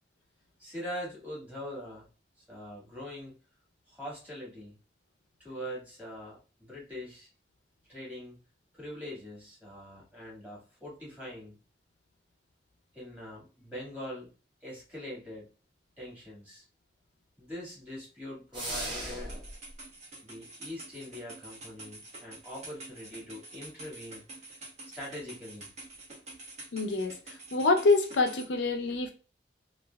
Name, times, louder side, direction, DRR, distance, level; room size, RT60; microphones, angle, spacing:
voice 1, 0.6-2.1 2.5-3.3 3.9-4.8 5.4-7.3 7.9-8.4 8.7-11.6 12.9-14.3 14.6-15.5 16.0-16.6 17.4-19.4 20.2-25.7, equal, 10° right, 1.6 m, -43 dB
sound 1, 18.5-19.5, right 1 dB, 25° right, 1.3 m, -36 dB
sound 2, 19.2-28.4, right 2 dB, 40° right, 1.2 m, -48 dB
voice 2, 26.7-27.2 27.5-29.1, left 3 dB, 90° left, 0.6 m, -26 dB
3.2 x 2.5 x 2.2 m
head